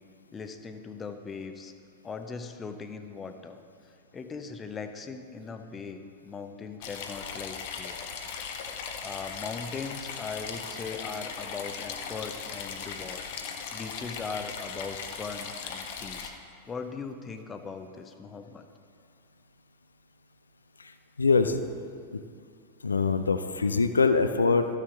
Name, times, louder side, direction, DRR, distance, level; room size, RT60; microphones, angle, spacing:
voice 1, 0.3-1.7 2.0-3.6 4.1-8.5 9.0-16.3 16.7-18.7, left 5 dB, 20° left, 8 dB, 0.7 m, -39 dB
sound 1, 6.8-16.3, left 6 dB, 50° left, 0.8 m, -38 dB
voice 2, 20.8-21.6 22.1-22.2 22.8-24.7, left 4 dB, 75° left, 9 dB, 0.4 m, -24 dB
13.5 x 6.5 x 3.9 m, 2.3 s
figure-of-eight pair, 90°, 0 cm